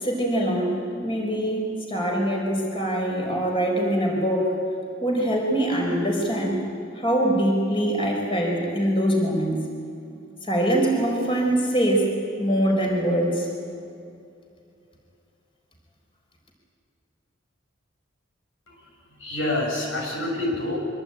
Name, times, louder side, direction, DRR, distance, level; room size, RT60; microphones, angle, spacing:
voice 1, 0.0-4.5 5.0-6.6 7.0-9.6 10.4-12.1 12.4-13.5, right 1 dB, 30° left, 0 dB, 5.1 m, -23 dB
voice 2, 18.7-20.8, left 1 dB, 90° left, 1 dB, 7.6 m, -28 dB
25.0 x 23.0 x 9.2 m, 2.5 s
head